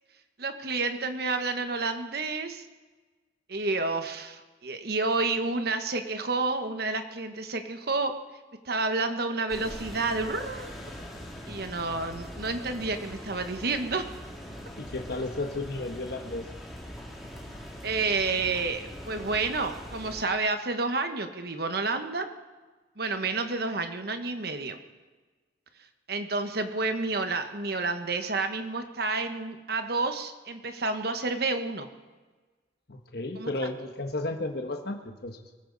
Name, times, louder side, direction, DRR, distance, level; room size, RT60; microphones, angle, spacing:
voice 1, 0.4-2.6 3.5-8.1 8.6-10.9 11.5-14.1 17.8-22.3 23.0-24.8 26.1-31.9 33.4-33.5, right 3 dB, 55° right, 7 dB, 1.2 m, -30 dB
sound 1, 9.5-20.2, equal, ahead, 2.5 m, -42 dB
voice 2, 14.7-16.5 32.9-35.4, left 2 dB, 55° left, 4 dB, 1.2 m, -33 dB
23.0 x 13.5 x 4.1 m, 1.3 s
head